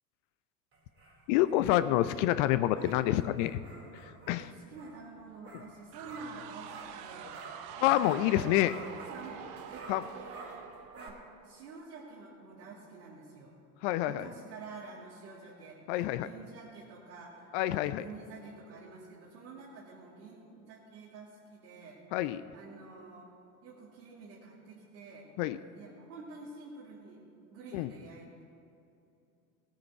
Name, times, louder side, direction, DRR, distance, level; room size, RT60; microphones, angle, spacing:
sound 1, 0.7-7.7 8.0-11.1, right 2 dB, 30° right, 2.4 m, -52 dB
voice 1, 1.3-3.6 3.9-4.5 7.8-8.7 9.9-10.0 13.8-14.3 15.9-16.3 17.5-18.0 22.1-22.4 25.4-25.6 27.7-27.9, left 14 dB, 50° left, 13 dB, 0.6 m, -27 dB
voice 2, 4.3-7.4 8.0-8.7 9.1-9.9 10.1-13.5 14.1-22.0 22.5-23.3 23.6-25.3 25.7-27.2 27.5-28.4, right 4 dB, 75° right, -7 dB, 2.4 m, -49 dB
sound 2, 5.9-11.7, right 8 dB, 50° right, 1.0 m, -46 dB
17.5 x 9.0 x 4.7 m, 2.7 s
hypercardioid pair, 80°, 47 cm